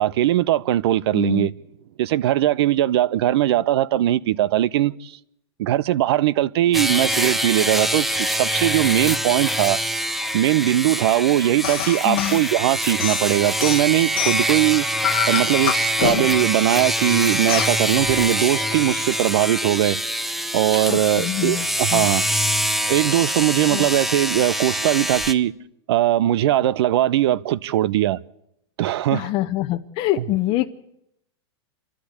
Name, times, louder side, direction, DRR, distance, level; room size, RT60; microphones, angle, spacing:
voice 1, 0.0-1.5 2.0-5.1 5.6-9.8 10.3-14.9 15.3-20.0 20.5-22.2 22.9-25.5 25.9-28.2 28.8-29.3, right 13 dB, 65° right, 0.8 m, -20 dB
voice 2, 1.1-1.5 12.0-12.4 20.9-22.1 23.7-23.9 29.1-30.7, left 15 dB, 40° left, 0.9 m, -25 dB
sound 1, 6.7-25.3, equal, ahead, 0.7 m, -24 dB
sound 2, 11.6-12.4 13.0-14.6 15.0-16.5 17.5-17.8, left 15 dB, 60° left, 1.0 m, -27 dB
28.0 x 12.0 x 8.1 m
hypercardioid pair, 135°, 14 cm